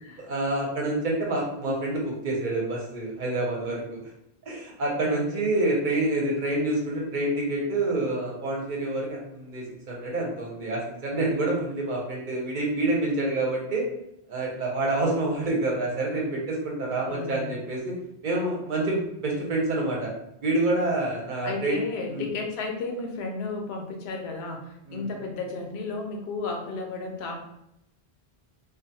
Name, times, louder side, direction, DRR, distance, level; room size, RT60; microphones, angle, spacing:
voice 1, 0.2-4.0 4.5-13.9 14.3-17.9 18.2-20.1 20.4-21.8 22.1-22.3 24.9-25.1, right 2 dB, 55° right, -2 dB, 0.7 m, -27 dB
voice 2, 5.0-5.4 17.0-17.5 21.4-27.4, left 3 dB, 80° left, 2 dB, 0.8 m, -33 dB
2.4 x 2.3 x 2.7 m, 0.80 s
omnidirectional pair, 1.1 m